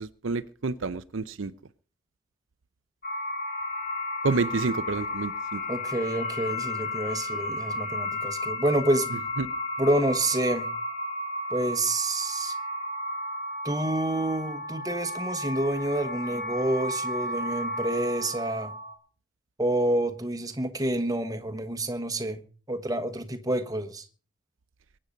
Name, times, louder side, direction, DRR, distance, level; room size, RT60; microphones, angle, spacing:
voice 1, 0.0-1.5 4.2-5.6 9.4-9.5, right 3 dB, 70° right, 0.6 m, -29 dB
sound 1, 3.0-18.9, left 1 dB, 45° left, 3.5 m, -33 dB
voice 2, 5.7-9.3 9.8-10.7 11.5-12.6 13.6-18.7 19.6-22.4 22.7-24.0, right 1 dB, 20° right, 1.3 m, -28 dB
22.5 x 8.8 x 5.3 m
head